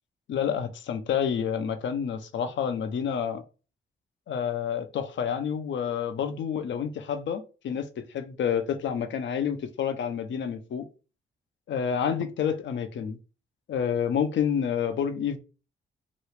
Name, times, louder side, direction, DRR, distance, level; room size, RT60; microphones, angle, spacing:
voice 1, 0.3-3.4 4.3-10.8 11.7-13.2 13.7-15.4, left 8 dB, 70° left, 0.6 m, -29 dB
3.0 x 2.3 x 3.2 m
supercardioid pair, 50°, 20 cm